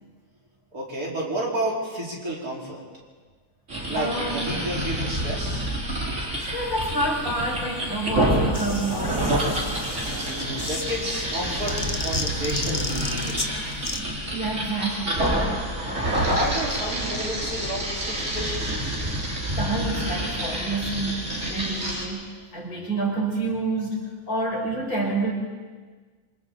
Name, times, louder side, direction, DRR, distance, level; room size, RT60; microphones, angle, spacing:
voice 1, 0.7-2.8 3.9-5.7 10.2-13.5 16.2-19.1, right 1 dB, 65° right, -4 dB, 5.0 m, -31 dB
sound 1, 3.7-22.0, right 1 dB, 45° right, 4.3 m, -28 dB
voice 2, 3.9-4.7 6.5-9.4 14.3-15.3 19.6-25.3, right 2 dB, 60° left, -3 dB, 5.9 m, -28 dB
sound 2, 6.4-14.0, left 3 dB, 25° left, 1.4 m, -35 dB
26.5 x 26.0 x 4.0 m, 1.4 s
omnidirectional pair, 1.7 m